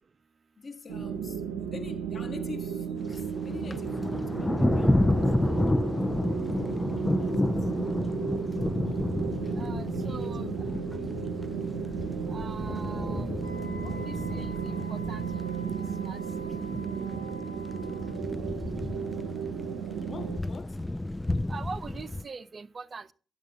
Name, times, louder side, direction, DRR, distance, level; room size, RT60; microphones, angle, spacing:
voice 1, 0.6-5.7 7.1-7.7 10.0-11.2 20.1-20.8, left 4 dB, 45° left, 1.4 m, -45 dB
sound 1, 0.9-20.4, right 7 dB, 85° right, 0.7 m, -34 dB
Thunder, 3.0-22.2, left 1 dB, 15° left, 0.3 m, -31 dB
voice 2, 9.5-10.5 12.3-13.3 13.8-15.4 16.0-16.2 21.5-23.1, right 4 dB, 45° right, 0.5 m, -42 dB
Wind instrument woodwind instrument, 13.4-18.2, left 1 dB, 80° left, 3.6 m, -46 dB
11.0 x 7.0 x 3.9 m
hypercardioid pair, 40°, 0 cm